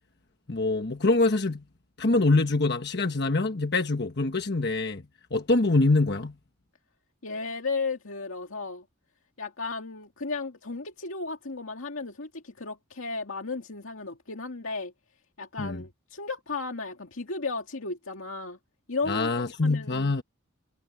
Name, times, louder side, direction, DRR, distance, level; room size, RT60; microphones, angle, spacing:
voice 1, 0.5-1.6 2.0-5.0 5.3-6.3 15.6-15.8 19.1-20.2, left 2 dB, 55° left, 1.2 m, -24 dB
voice 2, 7.2-8.9 9.4-14.9 15.4-18.6 18.9-19.3 19.6-20.2, left 3 dB, 85° left, 2.1 m, -34 dB
head